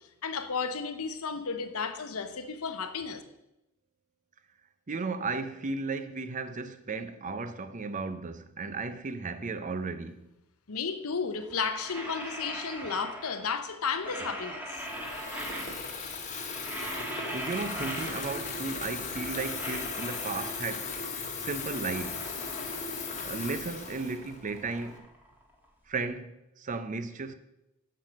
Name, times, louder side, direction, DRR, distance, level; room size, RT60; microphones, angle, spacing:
voice 1, 0.2-3.2 10.7-14.8, left 5 dB, 85° left, 0.9 m, -33 dB
voice 2, 4.9-10.2 15.5-15.8 17.3-20.9 21.4-22.3 23.2-25.1 25.9-27.3, right 4 dB, 35° right, 0.6 m, -35 dB
sound 1, 11.4-13.6 13.9-16.1 16.3-18.6 18.9-20.9 21.4-23.4 23.7-25.9, right 1 dB, 10° right, 1.6 m, -41 dB
Water tap faucet / Fill (with liquid), 14.7-25.0, left 4 dB, 35° left, 1.3 m, -37 dB
7.6 x 6.5 x 6.3 m
head